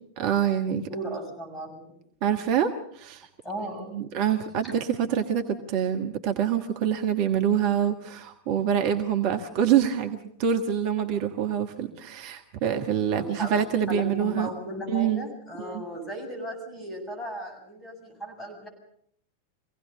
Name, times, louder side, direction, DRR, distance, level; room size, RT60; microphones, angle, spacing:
voice 1, 0.2-0.9 2.2-3.3 3.9-14.5 14.9-15.2 15.6-15.8, right 9 dB, 45° right, 5 dB, 1.4 m, -26 dB
voice 2, 0.9-2.0 3.4-4.0 4.6-4.7 13.2-13.5 13.9-18.7, equal, 10° left, 1 dB, 7.6 m, -36 dB
24.5 x 17.5 x 6.9 m, 0.67 s
figure-of-eight pair, 90°, 0 cm